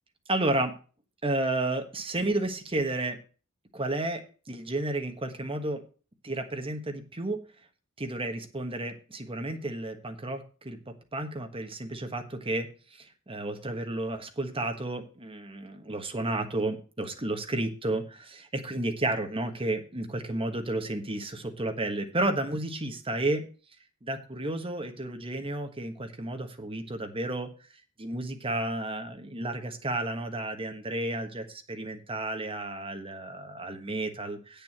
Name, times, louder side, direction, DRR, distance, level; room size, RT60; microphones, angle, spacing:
voice 1, 0.3-0.7 1.2-3.2 3.7-5.8 6.2-7.4 8.0-12.7 13.0-23.4 24.0-27.5 28.0-34.6, right 2 dB, 25° right, 5 dB, 1.4 m, -32 dB
8.6 x 7.0 x 6.0 m, 0.37 s
head